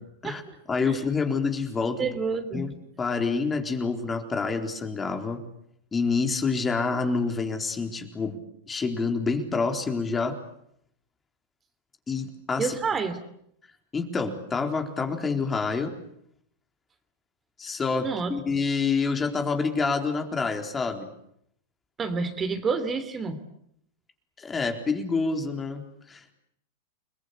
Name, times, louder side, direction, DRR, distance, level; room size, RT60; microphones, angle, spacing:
voice 1, 0.7-2.1 2.5-2.7 3.0-5.4 5.9-8.4 8.7-10.4 12.1-12.7 13.9-15.9 17.6-21.1 24.4-26.3, left 4 dB, 20° left, 5 dB, 4.1 m, -27 dB
voice 2, 2.0-2.7 12.6-13.2 18.0-18.3 22.0-23.4, right 5 dB, 25° right, 9 dB, 3.2 m, -28 dB
30.0 x 21.5 x 8.4 m, 0.73 s
hypercardioid pair, 100°, 0 cm